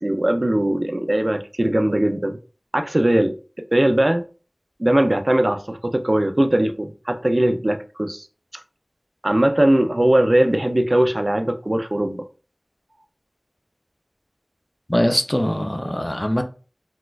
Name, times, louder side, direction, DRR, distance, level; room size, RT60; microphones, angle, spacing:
voice 1, 0.0-2.4 2.7-3.4 3.7-4.2 4.8-8.3 9.2-12.2, right 1 dB, 45° right, 0.4 m, -20 dB
voice 2, 14.9-16.4, equal, 25° left, 0.4 m, -22 dB
4.0 x 2.3 x 2.3 m
wide cardioid pair, 45°, 0 cm